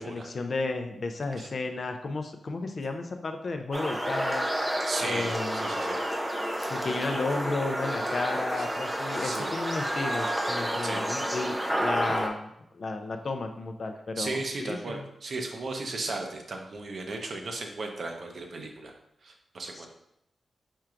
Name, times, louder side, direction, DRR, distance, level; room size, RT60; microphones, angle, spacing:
voice 1, 0.0-4.5 5.0-5.7 6.6-15.0 19.7-19.9, left 3 dB, 50° left, 6 dB, 0.4 m, -33 dB
sound 1, 3.7-12.3, equal, 10° right, 0.5 m, -30 dB
voice 2, 4.9-6.0 6.5-6.7 8.6-8.7 9.2-9.5 10.8-11.0 14.2-18.9 19.2-19.9, right 2 dB, 55° right, 3 dB, 0.7 m, -36 dB
4.5 x 4.5 x 2.5 m, 0.78 s
wide cardioid pair, 125°, 0 cm